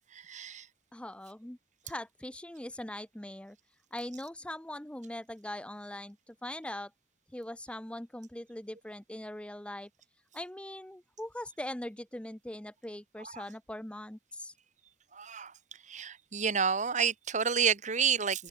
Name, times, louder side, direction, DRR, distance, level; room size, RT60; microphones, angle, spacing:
voice 1, 0.1-0.6 13.3-13.4 15.1-15.5 15.9-18.5, right 6 dB, 45° right, 1.5 m, -30 dB
voice 2, 0.9-1.6 1.8-3.6 3.9-6.9 7.3-9.9 10.3-14.5, left 1 dB, 5° left, 0.6 m, -41 dB
open air
head